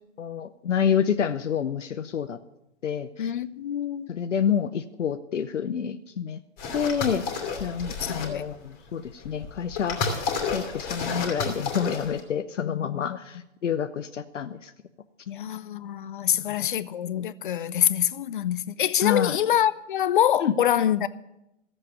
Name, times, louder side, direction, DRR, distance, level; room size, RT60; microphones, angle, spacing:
voice 1, 0.2-2.4 2.8-3.3 4.1-6.4 6.7-7.2 7.6-10.1 10.5-14.7 16.3-16.7 19.0-19.4 20.4-20.5, left 8 dB, 70° left, 0.8 m, -28 dB
voice 2, 3.2-4.1 8.0-8.4 12.6-13.2 15.3-21.1, left 10 dB, 40° left, 0.5 m, -25 dB
sound 1, 6.6-8.5 9.2-12.2, left 5 dB, 20° left, 2.5 m, -31 dB
14.0 x 7.6 x 9.5 m
figure-of-eight pair, 135°, 38 cm